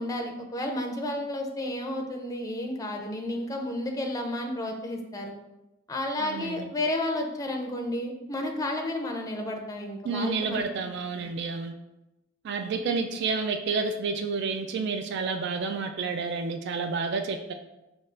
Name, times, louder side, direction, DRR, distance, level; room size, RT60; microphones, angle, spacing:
voice 1, 0.0-5.3 5.9-10.6 11.2-11.3, left 1 dB, 15° left, 2 dB, 0.4 m, -32 dB
voice 2, 6.2-6.7 10.0-11.7 12.4-17.5, right 4 dB, 55° right, 6 dB, 0.3 m, -30 dB
5.1 x 2.4 x 3.2 m, 0.97 s
head